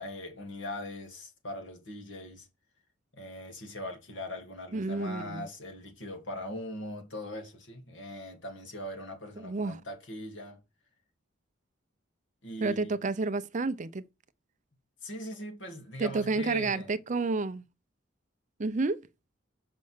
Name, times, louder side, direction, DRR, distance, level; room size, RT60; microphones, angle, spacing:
voice 1, 0.0-2.5 3.1-10.6 12.4-12.9 15.0-16.9, left 1 dB, 75° left, 2.6 m, -40 dB
voice 2, 4.7-5.4 9.4-9.8 12.6-14.0 16.0-17.6 18.6-19.0, right 3 dB, 40° right, 0.5 m, -30 dB
6.7 x 5.3 x 6.6 m
head